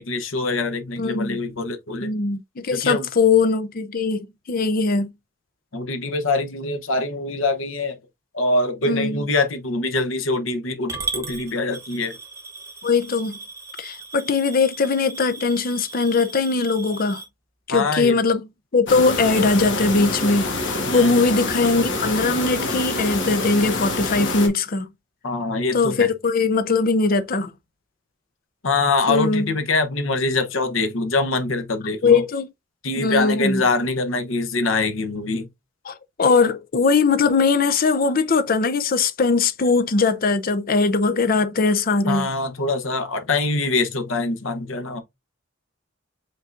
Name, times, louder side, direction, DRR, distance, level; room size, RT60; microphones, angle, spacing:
voice 1, 0.0-2.1 2.7-3.1 5.7-8.0 8.3-12.2 17.7-18.2 20.9-21.2 25.2-26.1 28.6-32.2 32.8-35.5 42.1-45.0, left 3 dB, 80° left, 1.0 m, -24 dB
voice 2, 1.0-1.4 2.0-4.2 4.5-5.1 8.8-9.2 12.8-13.4 13.8-17.2 17.7-18.4 18.7-24.9 25.7-27.5 29.1-29.5 32.0-32.5 33.0-33.6 35.9-42.3, left 4 dB, 45° left, 0.6 m, -20 dB
Coin (dropping) / Glass, 10.9-17.2, right 3 dB, 15° right, 1.1 m, -36 dB
sound 1, 18.9-24.5, left 2 dB, 65° left, 1.5 m, -26 dB
5.3 x 3.8 x 2.6 m
head